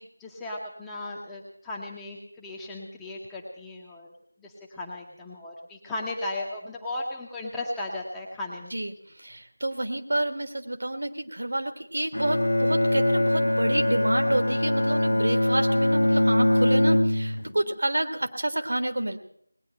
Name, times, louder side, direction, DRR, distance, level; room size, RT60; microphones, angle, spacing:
voice 1, 0.0-4.1 4.4-8.8, left 2 dB, 5° left, -4 dB, 1.0 m, -36 dB
voice 2, 8.7-19.2, right 1 dB, 50° right, 6 dB, 1.6 m, -29 dB
Bowed string instrument, 12.1-17.6, left 1 dB, 70° left, 1.0 m, -22 dB
19.5 x 9.5 x 7.7 m, 0.66 s
figure-of-eight pair, 170°, 0 cm